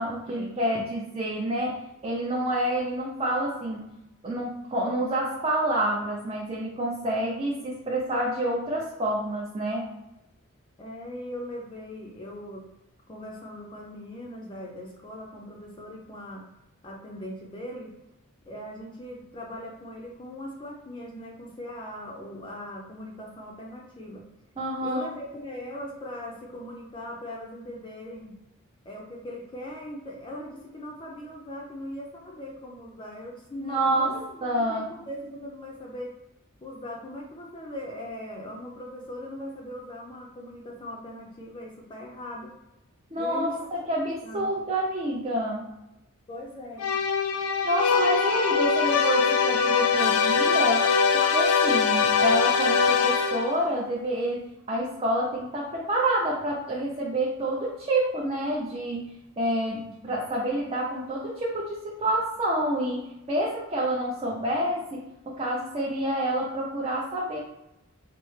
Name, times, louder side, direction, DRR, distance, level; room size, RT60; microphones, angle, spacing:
voice 1, 0.0-3.9 4.2-9.9 24.6-25.0 33.6-34.2 34.4-34.9 43.1-45.7 47.6-54.4 54.7-67.4, right 1 dB, 25° right, -4 dB, 0.5 m, -28 dB
voice 2, 10.8-12.6 13.1-16.4 16.8-17.9 18.5-24.2 24.8-28.3 28.8-36.1 36.6-42.5 43.1-43.7 44.0-44.5 46.3-46.9, left 1 dB, 25° left, -1 dB, 0.5 m, -40 dB
sound 1, 46.8-53.6, left 5 dB, 85° left, 0.4 m, -22 dB
4.3 x 2.0 x 3.2 m, 0.92 s
head